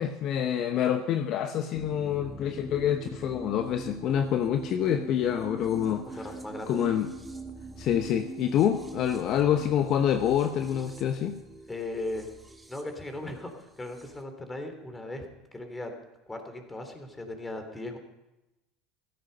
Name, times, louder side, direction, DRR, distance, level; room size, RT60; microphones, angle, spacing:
voice 1, 0.0-6.1 6.7-7.1 7.8-11.4, left 9 dB, 50° left, 7 dB, 0.9 m, -27 dB
sound 1, 1.7-14.2, right 3 dB, 10° right, 1.9 m, -43 dB
voice 2, 6.1-6.9 11.7-12.3 12.7-15.3 15.5-16.0 16.3-18.0, left 2 dB, 15° left, 5 dB, 3.2 m, -37 dB
15.0 x 13.5 x 5.6 m, 0.97 s
hypercardioid pair, 80°, 0 cm